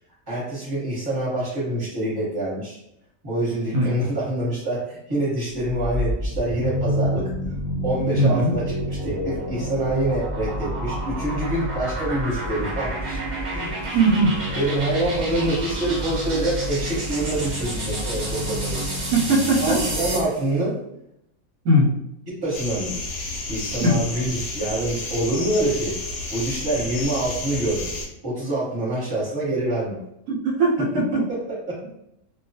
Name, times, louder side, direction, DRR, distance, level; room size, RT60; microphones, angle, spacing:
voice 1, 0.3-2.8 3.2-7.3 7.8-8.7 9.0-13.2 13.5-14.0 14.5-18.9 19.6-20.7 22.4-23.1 23.5-26.0 26.3-27.9 28.2-30.0 31.3-31.4 31.7-31.8, right 1 dB, 20° right, -7 dB, 1.0 m, -26 dB
sound 1, 5.6-20.3, equal, 55° right, 0.5 m, -28 dB
voice 2, 8.2-8.5 13.9-14.4 19.1-19.8 21.6-21.9 23.8-24.0 30.3-31.2, right 1 dB, 85° right, -1 dB, 1.1 m, -19 dB
sound 2, 22.5-28.1, left 2 dB, 65° left, 0.8 m, -31 dB
2.3 x 2.2 x 2.7 m, 0.80 s
omnidirectional pair, 1.5 m